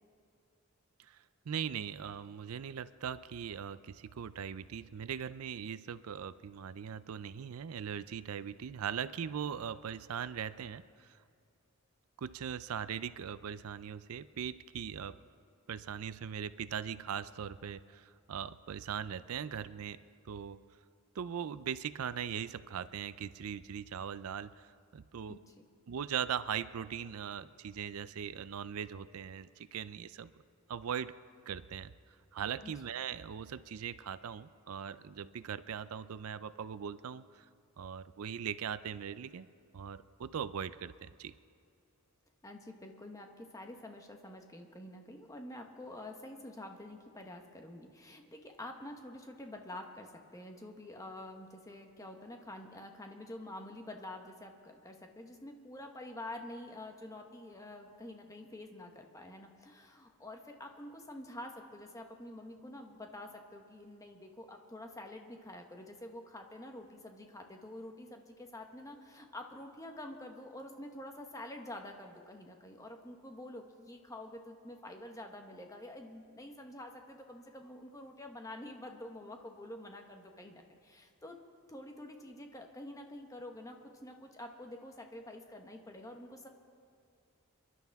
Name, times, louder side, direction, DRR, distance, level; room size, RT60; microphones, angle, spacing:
voice 1, 1.0-11.2 12.2-15.2 15.7-20.0 20.2-20.6 21.2-25.4 25.9-30.3 30.7-31.1 31.5-31.9 32.3-37.5 37.8-39.5 39.7-41.3, right 8 dB, 80° right, 15 dB, 0.4 m, -40 dB
voice 2, 42.4-81.4 81.7-86.5, left 1 dB, 15° left, 3 dB, 1.1 m, -48 dB
28.5 x 11.0 x 3.5 m, 2.4 s
head